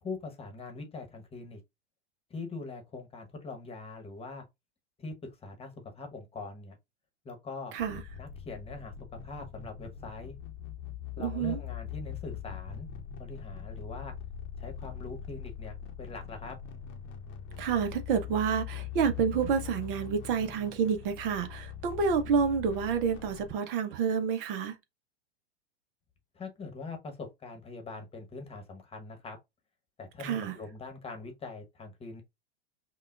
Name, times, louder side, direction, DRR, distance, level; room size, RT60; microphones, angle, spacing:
voice 1, 0.0-1.6 2.3-4.4 5.0-5.1 5.4-6.8 7.2-7.7 8.2-8.9 9.2-10.4 11.2-12.9 13.2-14.1 14.6-16.5 26.3-29.4 30.0-32.2, left 3 dB, 15° left, 1.1 m, -42 dB
sound 1, 7.8-23.5, left 9 dB, 35° left, 0.8 m, -42 dB
voice 2, 11.2-11.6 17.6-24.7 30.2-30.5, right 6 dB, 50° right, 0.8 m, -29 dB
5.6 x 2.3 x 2.4 m
hypercardioid pair, 110°, 33 cm